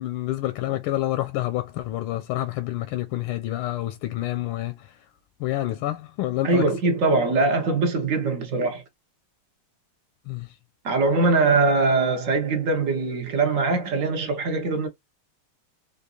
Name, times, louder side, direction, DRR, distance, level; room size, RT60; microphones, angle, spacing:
voice 1, 0.0-5.1 5.4-6.7 10.3-10.6, left 15 dB, 85° left, 1.5 m, -28 dB
voice 2, 6.4-8.8 10.8-14.9, right 3 dB, 55° right, 1.0 m, -22 dB
4.7 x 2.5 x 2.3 m
omnidirectional pair, 2.4 m